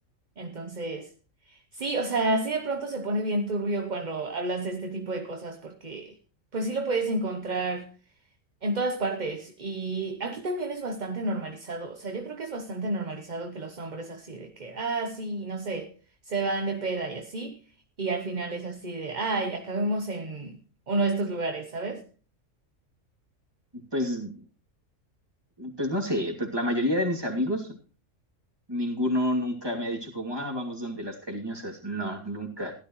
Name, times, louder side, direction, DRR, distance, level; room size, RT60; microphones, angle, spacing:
voice 1, 0.4-1.1 1.5-6.1 6.5-7.9 8.6-15.9 16.3-17.6 18.0-20.6 20.9-22.0, right 2 dB, 40° right, 1.0 m, -30 dB
voice 2, 23.9-24.3 25.6-27.8 28.7-32.7, equal, 20° right, 2.7 m, -29 dB
16.0 x 12.5 x 3.1 m
omnidirectional pair, 1.3 m